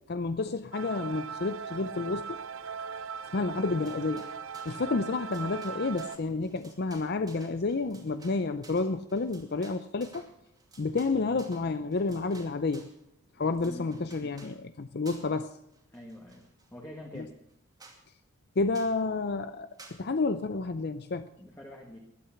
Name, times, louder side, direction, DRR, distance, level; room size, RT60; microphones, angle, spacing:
voice 1, 0.1-2.4 3.3-4.3 4.7-10.3 10.8-12.9 13.4-15.5 17.1-17.2 18.6-19.7 20.0-21.3, left 3 dB, 45° left, 11 dB, 0.5 m, -30 dB
sound 1, 0.7-6.2, right 6 dB, 60° right, 0.6 m, -39 dB
sound 2, 3.6-4.9 5.2-13.0 13.4-14.6 15.0-15.4 15.7-16.7 17.1-17.2 17.5-17.6 17.8-18.0 18.7-19.0 19.8-20.0, right 3 dB, 15° right, 2.4 m, -54 dB
voice 2, 13.6-14.1 15.9-17.3 21.4-22.0, left 1 dB, 10° left, 0 dB, 1.7 m, -46 dB
21.0 x 8.8 x 5.8 m, 0.78 s
head